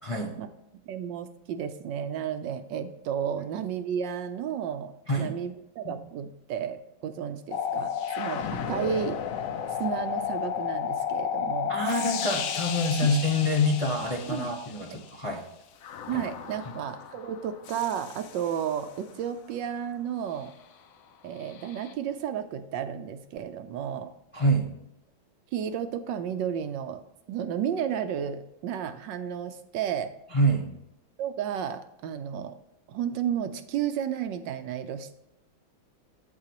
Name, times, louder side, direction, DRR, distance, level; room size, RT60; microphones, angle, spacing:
voice 1, 0.0-0.4 5.1-5.4 5.8-5.9 11.7-15.4 16.1-16.2 24.3-24.8 30.3-30.8, equal, 50° left, 0 dB, 0.3 m, -26 dB
voice 2, 0.9-7.9 8.2-9.2 9.8-11.7 14.3-14.5 16.1-20.5 21.2-24.1 25.5-27.0 27.3-30.1 31.2-32.6 32.9-35.2, right 8 dB, 70° right, 10 dB, 1.2 m, -32 dB
sound 1, 7.5-15.1 15.8-18.8 21.5-21.9, left 8 dB, 80° left, 0.7 m, -33 dB
8.7 x 7.5 x 2.9 m, 0.85 s
omnidirectional pair, 2.2 m